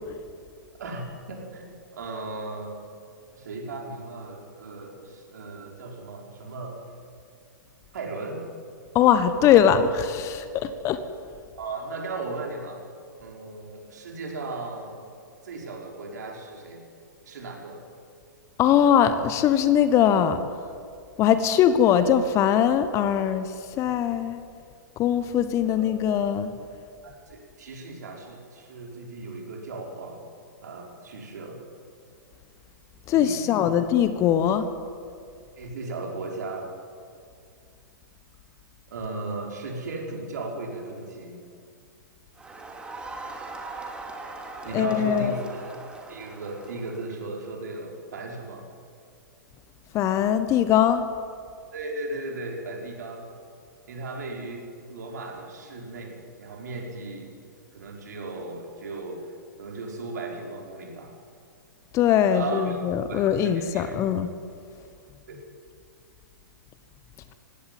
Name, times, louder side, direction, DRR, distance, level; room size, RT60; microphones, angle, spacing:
voice 1, 0.8-2.7 3.3-6.8 7.9-8.4 11.6-12.8 13.2-15.0 15.4-16.8 17.3-17.8 25.6-26.0 27.0-30.2 30.6-31.6 33.1-33.8 35.6-36.7 38.9-41.4 44.6-48.7 51.7-53.3 53.9-57.3 57.7-59.3 59.6-61.1 62.3-62.8 63.1-64.0 65.3-65.4, right 3 dB, 60° right, 0 dB, 5.3 m, -36 dB
voice 2, 8.9-11.0 18.6-20.4 21.2-23.5 23.8-24.4 25.0-26.5 33.1-34.7 44.7-45.3 49.9-51.1 61.9-64.3, left 9 dB, 25° left, 12 dB, 1.2 m, -21 dB
Crowd, 42.4-47.2, right 3 dB, 10° right, 2.5 m, -40 dB
19.5 x 16.5 x 9.3 m, 2.3 s
figure-of-eight pair, 110°, 11 cm